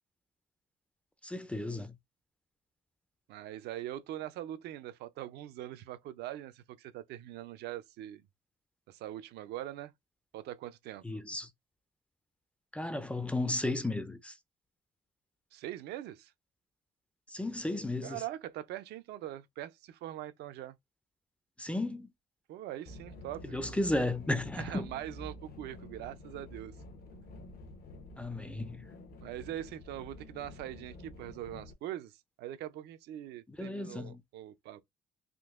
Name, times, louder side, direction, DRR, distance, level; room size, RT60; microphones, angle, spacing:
voice 1, 1.2-1.9 11.0-11.5 12.7-14.3 17.3-18.2 21.6-22.1 23.5-24.9 28.2-28.9 33.5-34.2, left 2 dB, 5° left, 0.4 m, -34 dB
voice 2, 3.3-8.2 8.9-9.9 10.3-11.2 15.5-16.3 18.0-20.8 22.5-23.6 24.6-26.8 29.2-34.8, right 13 dB, 75° right, 0.5 m, -42 dB
sound 1, 22.8-31.7, left 1 dB, 60° left, 0.8 m, -49 dB
3.6 x 2.5 x 2.4 m
cardioid pair, 110°, 17 cm